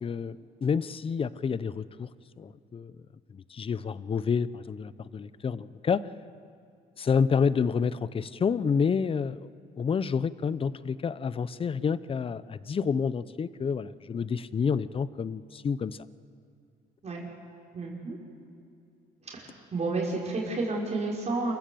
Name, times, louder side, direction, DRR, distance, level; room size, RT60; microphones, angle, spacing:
voice 1, 0.0-2.1 2.4-2.9 3.3-6.0 7.0-9.5 9.8-16.0, left 6 dB, 35° left, 17 dB, 0.7 m, -29 dB
voice 2, 17.7-18.2 19.3-21.5, right 3 dB, 45° right, -3 dB, 5.2 m, -31 dB
28.0 x 15.0 x 7.8 m, 2.4 s
cardioid pair, 80°, 16 cm